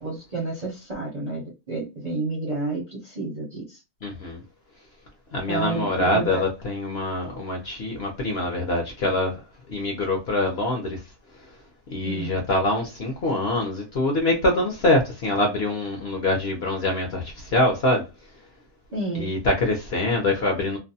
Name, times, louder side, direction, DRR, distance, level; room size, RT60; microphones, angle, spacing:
voice 1, 0.0-3.8 5.5-6.4 12.0-12.4 18.9-19.3, right 3 dB, 40° right, 0.6 m, -30 dB
voice 2, 4.0-4.4 5.3-9.4 9.7-11.0 11.9-18.0 19.1-20.8, left 1 dB, 55° left, 0.7 m, -24 dB
2.6 x 2.2 x 2.6 m
omnidirectional pair, 1.6 m